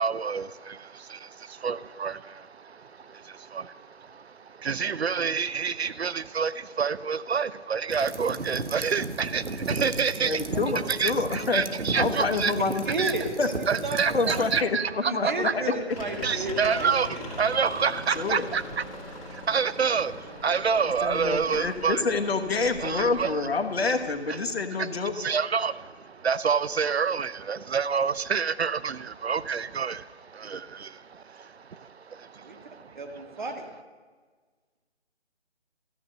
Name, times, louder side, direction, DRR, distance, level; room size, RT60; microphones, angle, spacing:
voice 1, 0.0-10.4 10.9-12.5 13.0-13.1 13.7-15.5 16.2-22.1 22.8-23.4 24.8-24.9 25.2-33.4, right 6 dB, 65° right, 16 dB, 0.6 m, -28 dB
sound 1, 7.9-14.6, right 3 dB, 85° right, 1.2 m, -34 dB
voice 2, 10.2-11.6 11.9-12.8 13.4-13.5 14.1-15.6 18.1-18.5 20.8-25.1, left 4 dB, 60° left, 5 dB, 1.3 m, -27 dB
voice 3, 12.9-13.5 13.8-14.0 14.2-14.3 15.0-16.9 32.4-32.6 32.9-33.6, right 2 dB, 45° right, 4 dB, 1.7 m, -32 dB
sound 2, 15.9-24.2, left 2 dB, 30° left, 2.6 m, -41 dB
13.5 x 9.3 x 6.6 m, 1.5 s
figure-of-eight pair, 165°, 35 cm